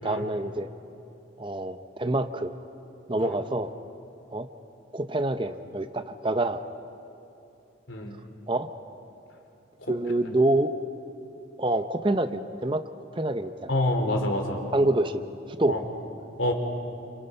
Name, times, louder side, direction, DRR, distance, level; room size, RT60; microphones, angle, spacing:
voice 1, 0.0-0.7 1.4-2.5 3.1-3.7 4.3-4.5 4.9-6.6 8.5-8.7 9.9-10.7 11.6-12.8 13.1-13.7 14.7-15.2 15.5-15.8, right 2 dB, 25° right, 9 dB, 0.7 m, -26 dB
voice 2, 13.7-14.6 15.7-15.8 16.4-16.5, left 1 dB, 85° left, 3 dB, 3.5 m, -26 dB
29.5 x 27.5 x 5.5 m, 2.8 s
head